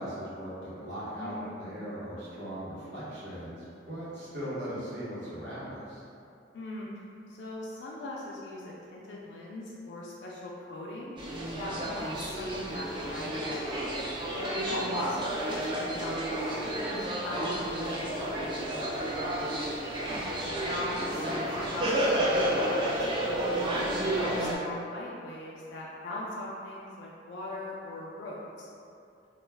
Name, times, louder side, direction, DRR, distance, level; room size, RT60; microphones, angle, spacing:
voice 1, 0.0-6.0 20.1-20.7, equal, 65° right, -10 dB, 0.9 m, -39 dB
voice 2, 1.2-2.0 6.5-6.9 7.3-11.2 11.6-13.7 14.3-19.4 20.6-28.7, left 1 dB, 65° left, -5 dB, 0.3 m, -40 dB
sound 1, 11.2-24.5, right 1 dB, 25° right, 0.3 m, -31 dB
2.3 x 2.1 x 3.3 m, 2.5 s
head